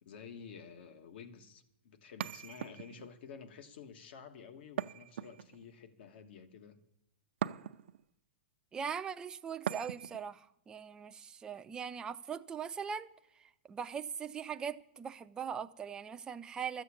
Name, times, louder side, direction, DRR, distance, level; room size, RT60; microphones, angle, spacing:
voice 1, 0.0-6.8, left 6 dB, 60° left, 1.5 m, -51 dB
sound 1, 2.2-3.1 4.8-5.7 7.4-8.0 9.7-10.3, right 10 dB, 70° right, 0.5 m, -40 dB
voice 2, 8.7-13.1 13.4-16.8, right 7 dB, 10° right, 0.5 m, -41 dB
13.0 x 6.9 x 8.5 m
hypercardioid pair, 155°, 6 cm